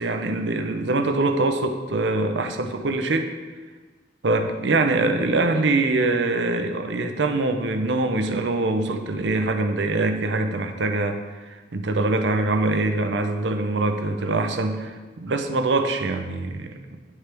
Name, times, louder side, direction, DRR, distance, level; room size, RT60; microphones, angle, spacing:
voice 1, 0.0-3.3 4.2-17.0, right 2 dB, 70° right, 6 dB, 0.7 m, -24 dB
9.8 x 4.4 x 3.4 m, 1.3 s
head